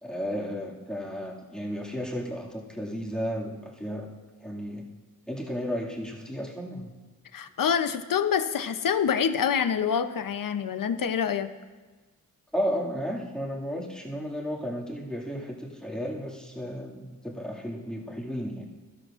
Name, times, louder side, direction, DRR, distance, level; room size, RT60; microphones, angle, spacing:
voice 1, 0.0-4.1 4.4-4.8 5.3-6.9 12.5-18.7, equal, ahead, -3 dB, 2.1 m, -33 dB
voice 2, 7.3-11.5, left 7 dB, 65° left, 11 dB, 0.7 m, -26 dB
13.5 x 12.5 x 2.5 m, 1.3 s
cardioid pair, 65°, 36 cm